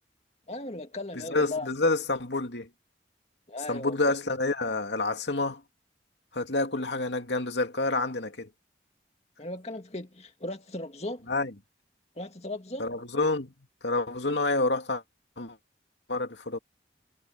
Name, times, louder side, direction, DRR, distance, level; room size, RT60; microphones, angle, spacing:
voice 1, 0.5-1.7 3.5-4.0 9.4-11.3 12.2-12.9, left 2 dB, 35° left, 2.3 m, -37 dB
voice 2, 1.3-2.7 3.7-5.6 6.3-8.5 11.3-11.5 12.8-13.5 13.8-15.0 15.4-15.6 16.1-16.6, left 2 dB, 75° left, 2.6 m, -28 dB
head